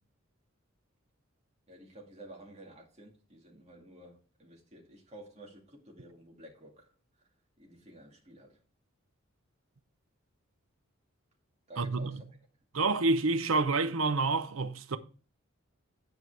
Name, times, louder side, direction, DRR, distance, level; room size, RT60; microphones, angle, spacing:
voice 1, 1.7-6.9 7.6-8.6 11.7-12.2, right 1 dB, 30° right, 2.2 m, -52 dB
voice 2, 11.8-12.2 12.7-15.0, right 3 dB, 75° right, 0.7 m, -28 dB
10.0 x 4.6 x 4.7 m
head